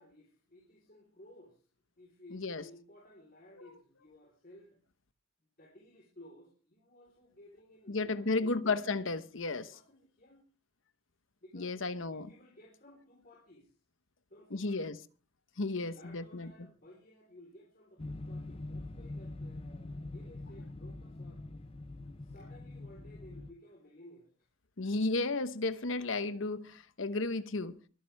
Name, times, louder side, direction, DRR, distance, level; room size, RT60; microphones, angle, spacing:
voice 1, 0.0-1.7 2.0-4.8 5.6-8.8 9.7-10.4 11.4-13.8 14.3-14.9 15.6-21.6 22.2-24.5, left 1 dB, 45° left, 4.1 m, -57 dB
voice 2, 2.3-2.6 7.9-9.7 11.5-12.3 14.5-15.0 15.6-16.5 24.8-27.8, left 3 dB, 70° left, 1.0 m, -33 dB
sound 1, 18.0-23.5, left 2 dB, 30° left, 0.6 m, -44 dB
23.0 x 10.0 x 3.5 m
head